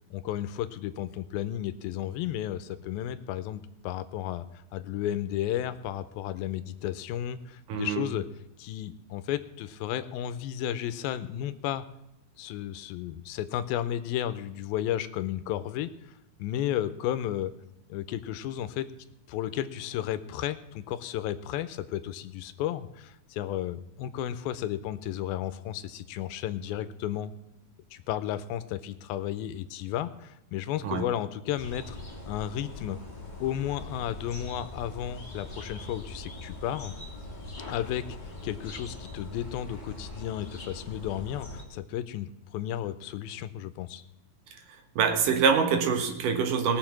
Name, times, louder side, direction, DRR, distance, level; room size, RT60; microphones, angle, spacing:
voice 1, 0.1-4.5 4.7-8.2 8.6-11.8 12.4-15.9 16.4-17.5 17.9-18.9 19.3-27.3 27.9-32.0 32.3-33.0 33.4-36.9 37.7-38.2 38.4-44.0, left 11 dB, 85° left, 12 dB, 2.5 m, -33 dB
voice 2, 7.7-8.0 30.8-31.0 45.0-46.8, right 6 dB, 65° right, 6 dB, 2.7 m, -25 dB
sound 1, 31.6-41.6, left 1 dB, 15° left, 1.7 m, -42 dB
18.5 x 7.1 x 5.9 m, 0.87 s
omnidirectional pair, 4.3 m